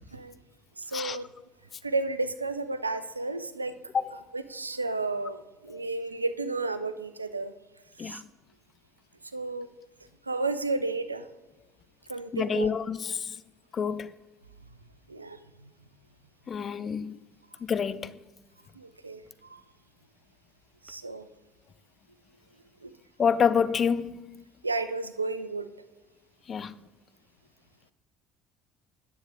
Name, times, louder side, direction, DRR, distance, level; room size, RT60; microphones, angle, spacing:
voice 1, 0.9-1.3 1.8-3.7 4.3-7.5 8.0-8.2 9.3-9.7 10.3-11.2 12.1-12.7 15.1-15.4 18.8-19.2 19.5-19.6 20.8-21.2 22.8-22.9 24.6-25.7, right 3 dB, 90° right, 0.4 m, -32 dB
voice 2, 12.3-13.3 13.7-14.1 16.5-17.2 17.6-18.1 23.2-24.2 26.5-26.7, left 6 dB, 35° left, 0.5 m, -27 dB
9.7 x 7.1 x 3.6 m
figure-of-eight pair, 60°, 0 cm